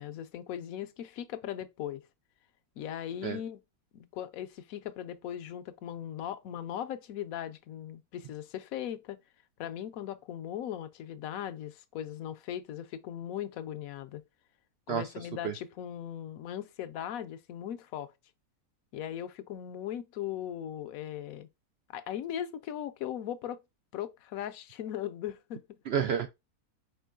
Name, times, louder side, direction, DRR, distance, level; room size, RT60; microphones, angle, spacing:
voice 1, 0.0-2.0 2.8-3.6 3.9-9.2 9.6-14.2 14.9-18.1 18.9-21.5 21.9-23.6 23.9-25.8, left 10 dB, 70° left, 1.0 m, -38 dB
voice 2, 14.9-15.5 25.9-26.3, right 8 dB, 80° right, 0.5 m, -31 dB
4.9 x 4.4 x 2.3 m
omnidirectional pair, 1.6 m